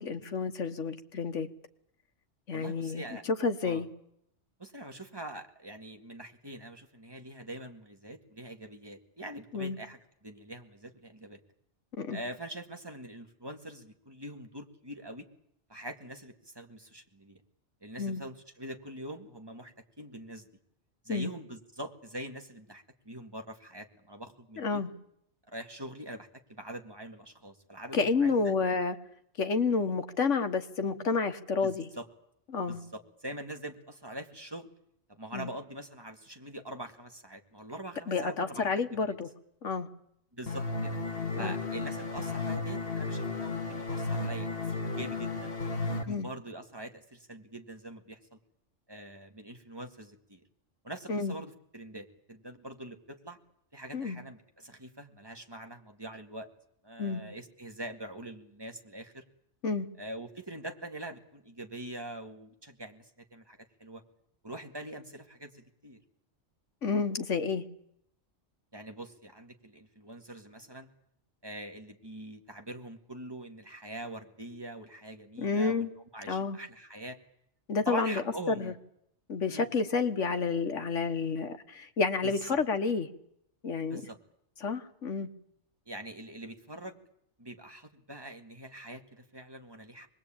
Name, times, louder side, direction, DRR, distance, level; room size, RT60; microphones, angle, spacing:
voice 1, 0.0-1.5 2.5-3.9 9.5-9.8 12.0-12.2 18.0-18.2 21.1-21.3 24.6-24.9 27.9-29.0 29.4-31.9 32.5-32.8 35.3-35.5 38.1-39.3 39.6-39.9 41.4-41.6 46.1-46.3 51.1-51.3 53.9-54.2 57.0-57.2 59.6-59.9 66.8-67.6 75.4-75.9 76.3-76.6 77.7-78.7 79.3-83.1 83.6-84.0 84.6-85.3, left 4 dB, 85° left, 8 dB, 1.7 m, -30 dB
voice 2, 2.5-3.2 3.6-3.8 4.6-11.4 12.1-15.3 15.7-17.4 17.8-20.5 21.0-24.8 25.5-28.5 31.6-32.1 32.7-34.7 35.1-38.7 38.9-39.1 40.3-41.0 41.4-45.5 45.9-48.4 48.9-50.4 50.8-53.4 53.7-56.5 56.8-59.2 60.0-64.0 64.4-66.0 68.7-70.9 71.4-77.2 77.9-78.7 79.5-79.7 82.2-82.6 83.8-84.2 85.9-87.0 87.4-90.1, right 1 dB, 20° right, 4 dB, 2.1 m, -44 dB
sound 1, 40.5-46.0, left 3 dB, 55° left, 1.8 m, -34 dB
25.0 x 20.5 x 8.9 m, 0.75 s
omnidirectional pair, 1.2 m